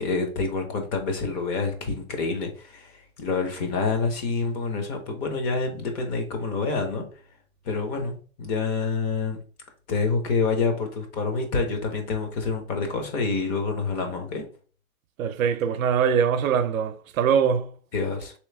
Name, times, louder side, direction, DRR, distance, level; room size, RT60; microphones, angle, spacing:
voice 1, 0.0-7.0 7.6-9.4 9.9-14.5 17.9-18.3, left 4 dB, 30° left, 0.8 m, -27 dB
voice 2, 15.2-17.7, right 7 dB, 70° right, 0.6 m, -22 dB
3.2 x 3.1 x 3.3 m
hypercardioid pair, 140°, 42 cm